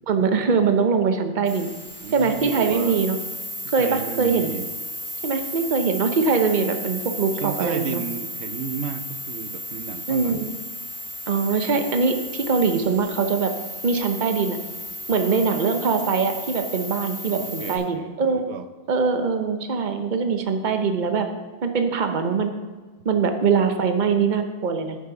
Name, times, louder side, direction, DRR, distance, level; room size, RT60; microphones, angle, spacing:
voice 1, 0.1-1.7 2.1-3.2 3.7-4.5 5.2-8.0 10.1-10.5 11.3-13.5 13.8-14.6 15.1-18.4 18.9-21.3 21.6-22.5 23.0-25.0, right 5 dB, 50° right, 7 dB, 1.0 m, -22 dB
sound 1, 1.4-17.8, equal, 65° right, 2.7 m, -34 dB
voice 2, 2.0-3.0 3.6-4.7 7.3-10.5 15.1-15.5 17.3-18.7, right 8 dB, 85° right, 10 dB, 0.9 m, -33 dB
9.7 x 6.6 x 5.8 m, 1.4 s
omnidirectional pair, 1.1 m